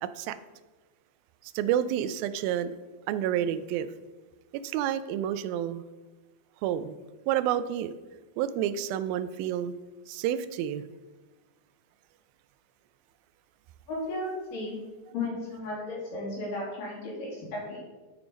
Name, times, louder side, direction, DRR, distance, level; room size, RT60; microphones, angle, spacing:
voice 1, 0.0-0.4 1.5-2.7 3.1-3.9 4.6-5.8 6.6-6.9 7.3-7.9 8.4-9.7 10.1-10.8, right 10 dB, 90° right, 2.4 m, -29 dB
voice 2, 13.9-14.7 15.1-17.8, left 2 dB, 65° left, 4.1 m, -34 dB
10.5 x 4.6 x 5.1 m
omnidirectional pair, 4.1 m